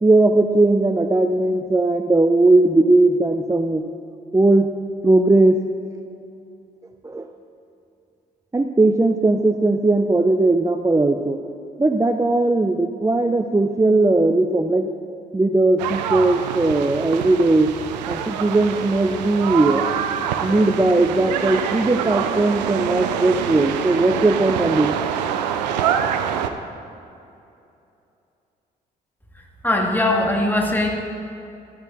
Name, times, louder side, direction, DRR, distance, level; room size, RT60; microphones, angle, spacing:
voice 1, 0.0-3.8 4.3-4.7 5.0-5.6 7.0-7.3 8.5-11.4 11.8-14.9 15.3-17.7 18.1-19.9 20.4-24.9, right 2 dB, 15° right, 7 dB, 0.6 m, -18 dB
sound 1, 15.8-26.5, right 8 dB, 85° right, 0.5 m, -25 dB
voice 2, 29.6-30.9, left 1 dB, 10° left, 0 dB, 2.3 m, -20 dB
13.0 x 12.0 x 4.2 m, 2.7 s
hypercardioid pair, 40°, 21 cm